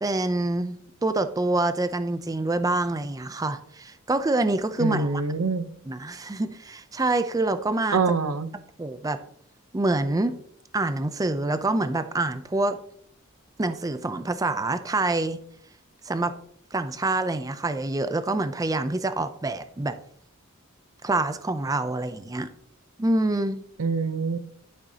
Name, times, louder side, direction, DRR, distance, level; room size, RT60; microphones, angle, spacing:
voice 1, 0.0-5.2 5.9-8.0 8.8-9.2 9.7-10.4 10.7-12.8 13.6-15.4 16.1-16.3 16.7-20.0 21.0-22.5 23.0-23.6, right 2 dB, 15° right, 0.5 m, -26 dB
voice 2, 4.8-5.6 7.9-8.5 23.8-24.4, right 4 dB, 85° right, 0.7 m, -25 dB
12.0 x 6.3 x 2.8 m
head